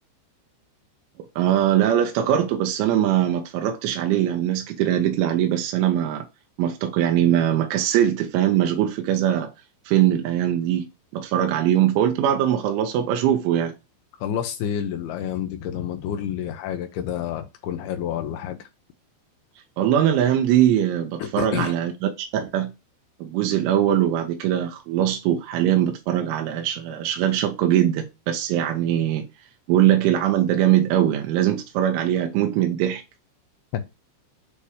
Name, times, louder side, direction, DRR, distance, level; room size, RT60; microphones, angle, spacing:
voice 1, 1.4-6.2 6.6-9.5 9.9-10.9 11.1-13.7 19.8-22.7 23.2-29.2 29.7-33.0, right 11 dB, 90° right, 3.3 m, -21 dB
voice 2, 14.2-18.7 21.2-21.7 33.7-33.8, left 9 dB, 80° left, 2.3 m, -29 dB
8.4 x 2.8 x 4.8 m
omnidirectional pair, 5.4 m